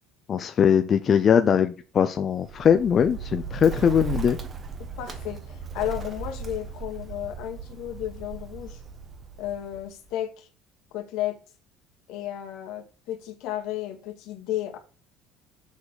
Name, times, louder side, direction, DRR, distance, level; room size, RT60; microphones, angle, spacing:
voice 1, 0.3-4.4, left 8 dB, 35° left, 0.5 m, -21 dB
Bird, 2.3-10.1, right 5 dB, 35° right, 1.4 m, -37 dB
voice 2, 5.0-8.8 9.4-10.5 10.9-11.4 12.1-14.8, left 12 dB, 70° left, 1.9 m, -33 dB
7.2 x 4.1 x 6.4 m
cardioid pair, 120°, 0 cm